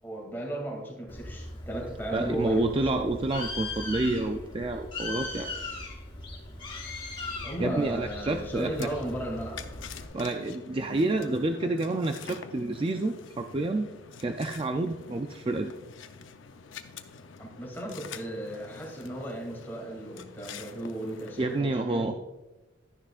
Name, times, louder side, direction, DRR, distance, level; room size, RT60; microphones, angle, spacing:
voice 1, 0.0-3.1 7.4-9.8 17.4-22.2, right 1 dB, 10° left, -2 dB, 2.5 m, -36 dB
Bird, 1.1-10.0, left 2 dB, 25° left, 1.8 m, -39 dB
voice 2, 2.1-5.5 7.6-8.9 10.1-13.9 14.2-15.7 21.4-22.1, right 2 dB, 30° right, 5 dB, 0.4 m, -29 dB
sound 1, 8.3-21.6, left 6 dB, 85° left, 0.6 m, -47 dB
12.0 x 10.0 x 2.4 m, 1.1 s
head